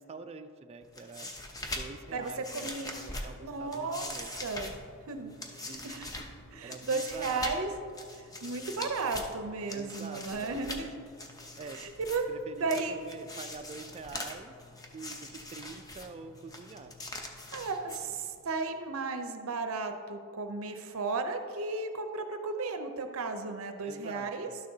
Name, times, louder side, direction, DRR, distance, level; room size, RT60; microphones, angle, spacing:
voice 1, 0.0-1.3 1.8-2.7 2.9-4.3 5.7-5.9 6.6-7.5 9.7-10.6 11.6-11.9 12.3-14.5 14.9-16.9 23.8-24.6, right 4 dB, 30° right, 7 dB, 0.3 m, -45 dB
sound 1, 0.8-18.4, left 2 dB, 15° left, 0.6 m, -43 dB
voice 2, 2.1-3.0 3.4-4.1 4.4-4.7 5.1-6.2 6.5-7.7 8.1-10.9 11.7-12.3 12.6-13.0 17.5-24.5, right 3 dB, 70° right, 6 dB, 0.6 m, -34 dB
12.0 x 6.5 x 2.7 m, 2.2 s
head